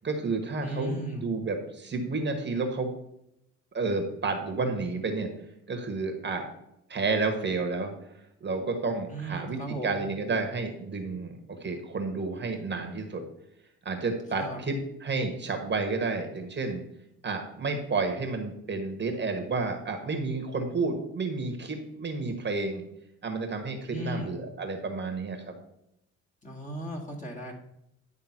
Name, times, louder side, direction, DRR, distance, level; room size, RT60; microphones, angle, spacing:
voice 1, 0.0-2.9 3.7-5.3 5.7-6.5 6.9-9.6 9.8-13.2 13.8-16.8 17.2-22.8 23.2-25.5, right 3 dB, 35° right, 4 dB, 1.3 m, -31 dB
voice 2, 0.6-1.3 9.1-10.1 14.4-14.6 23.9-24.4 26.4-27.5, right 1 dB, 25° left, -1 dB, 2.1 m, -36 dB
10.5 x 3.5 x 5.9 m, 0.80 s
cardioid pair, 90°, 30 cm